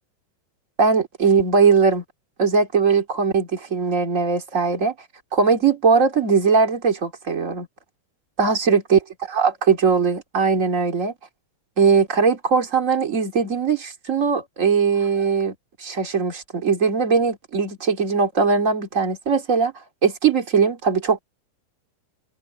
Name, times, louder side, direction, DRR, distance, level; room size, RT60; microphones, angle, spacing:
voice 1, 0.8-2.0 2.4-4.9 5.3-7.7 8.4-9.0 9.3-11.1 11.8-19.7 20.0-21.2, right 5 dB, 80° right, 0.7 m, -20 dB
open air
omnidirectional pair, 5.6 m